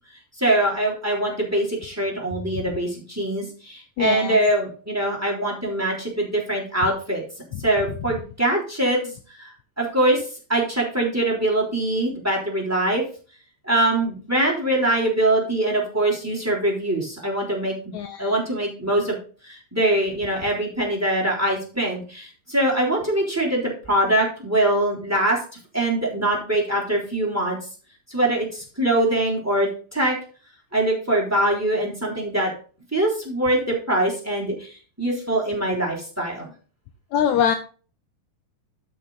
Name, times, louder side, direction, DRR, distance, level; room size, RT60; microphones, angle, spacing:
voice 1, 0.4-7.2 7.6-10.2 10.5-13.0 13.6-17.7 18.2-19.2 19.4-25.4 25.7-27.6 28.1-30.2 30.7-32.5 32.9-36.5, right 1 dB, 5° right, -3 dB, 3.1 m, -23 dB
voice 2, 4.0-4.4 17.9-18.3 37.1-37.6, left 8 dB, 75° left, 7 dB, 1.8 m, -22 dB
12.5 x 5.9 x 4.0 m, 0.38 s
omnidirectional pair, 3.8 m